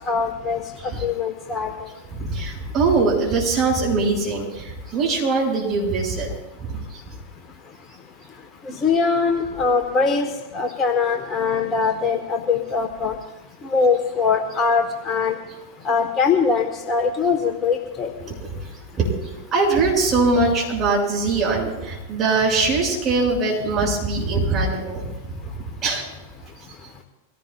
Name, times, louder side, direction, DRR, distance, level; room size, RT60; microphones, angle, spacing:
voice 1, 0.1-1.7 8.6-10.3 10.5-13.2 13.6-15.3 15.8-18.1, left 5 dB, 25° left, 5 dB, 1.2 m, -22 dB
voice 2, 2.2-6.3 6.6-6.8 18.9-19.1 19.5-25.1 25.8-26.0, right 3 dB, 30° right, -3 dB, 6.3 m, -21 dB
24.5 x 17.0 x 2.4 m, 1.0 s
figure-of-eight pair, 90°, 0 cm